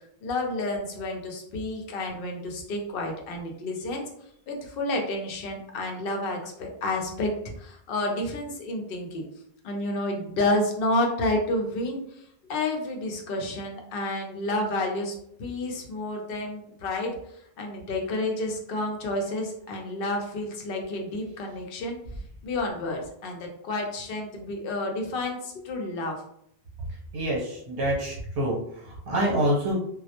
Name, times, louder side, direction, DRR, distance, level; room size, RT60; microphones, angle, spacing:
voice 1, 0.2-4.0 4.5-7.3 7.6-9.2 9.6-22.0 22.4-26.2, left 2 dB, 65° left, 2 dB, 0.7 m, -30 dB
voice 2, 27.1-29.8, right 1 dB, 70° right, -4 dB, 1.0 m, -26 dB
2.2 x 2.0 x 2.8 m, 0.70 s
omnidirectional pair, 1.1 m